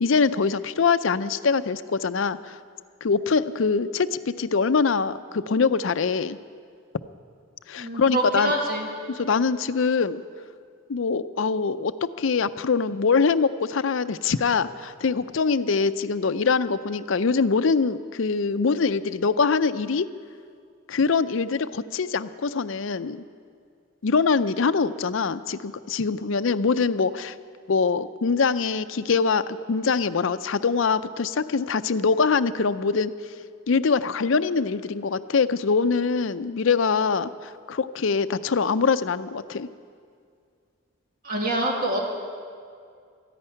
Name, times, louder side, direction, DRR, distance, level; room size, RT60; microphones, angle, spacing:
voice 1, 0.0-2.6 3.0-6.4 7.7-8.5 9.1-10.2 10.9-20.1 20.9-23.2 24.0-27.3 27.7-33.1 33.7-37.3 37.7-39.7, left 5 dB, 70° left, 12 dB, 0.5 m, -23 dB
voice 2, 7.8-8.9 41.2-42.0, right 1 dB, 45° right, -1 dB, 2.3 m, -26 dB
14.0 x 10.0 x 9.8 m, 2.2 s
head